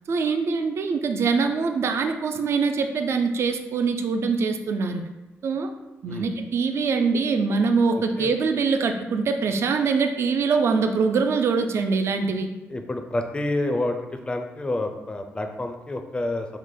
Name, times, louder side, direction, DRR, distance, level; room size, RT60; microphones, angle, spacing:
voice 1, 0.1-5.1 5.4-5.7 6.0-12.5, right 4 dB, 60° right, 6 dB, 0.3 m, -23 dB
voice 2, 7.9-8.3 12.7-14.0 14.3-16.5, left 1 dB, 20° left, 5 dB, 0.4 m, -28 dB
3.2 x 2.1 x 3.7 m, 1.0 s
cardioid pair, 80°, 5 cm